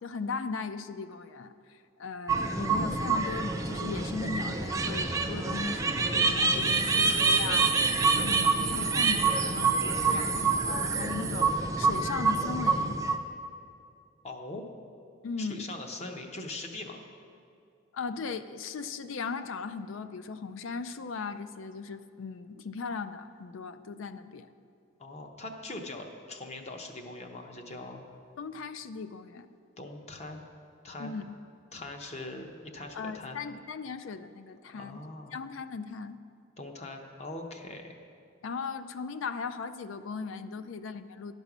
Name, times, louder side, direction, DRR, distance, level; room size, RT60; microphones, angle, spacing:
voice 1, 0.0-7.7 8.2-13.0 15.2-15.7 17.9-24.5 28.4-29.5 31.0-31.3 32.9-35.0 35.3-36.2 38.4-41.3, left 4 dB, 70° left, 12 dB, 0.4 m, -38 dB
sound 1, 2.3-13.2, right 4 dB, 15° right, 0.4 m, -27 dB
voice 2, 14.2-14.7 15.4-17.0 25.0-28.1 29.8-30.4 30.8-31.1 31.7-33.4 34.7-35.4 36.6-38.0, left 2 dB, 35° left, 4 dB, 0.7 m, -41 dB
11.0 x 5.3 x 6.0 m, 2.5 s
head